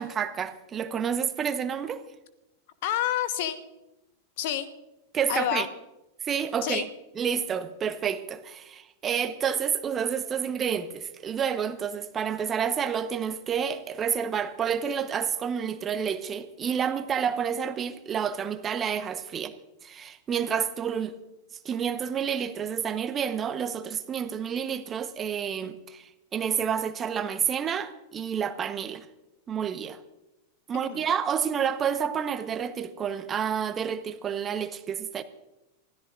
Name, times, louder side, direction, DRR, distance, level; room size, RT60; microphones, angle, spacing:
voice 1, 0.0-2.0 5.1-5.7 6.3-6.9 7.2-19.5 19.8-21.1 21.6-29.0 29.5-30.0 30.7-35.2, right 7 dB, 25° right, 1.1 m, -29 dB
voice 2, 2.8-3.6 4.4-4.7 5.3-5.7 6.6-6.9 30.7-31.0, left 11 dB, 50° left, 1.3 m, -28 dB
25.5 x 16.5 x 2.6 m
figure-of-eight pair, 90°, 0 cm